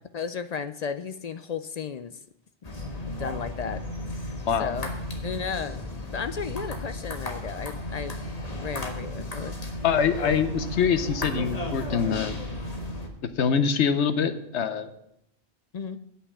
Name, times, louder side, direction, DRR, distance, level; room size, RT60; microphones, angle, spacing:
voice 1, 0.1-2.2 3.2-3.8 4.2-4.9 5.2-8.2 8.6-9.6 15.7-16.0, left 6 dB, 60° left, 12 dB, 0.4 m, -34 dB
sound 1, 2.6-13.1, left 1 dB, 35° left, 1.6 m, -34 dB
voice 2, 9.8-12.4 13.4-14.9, left 7 dB, 85° left, 11 dB, 1.1 m, -24 dB
9.6 x 5.7 x 8.4 m, 0.77 s
omnidirectional pair, 1.1 m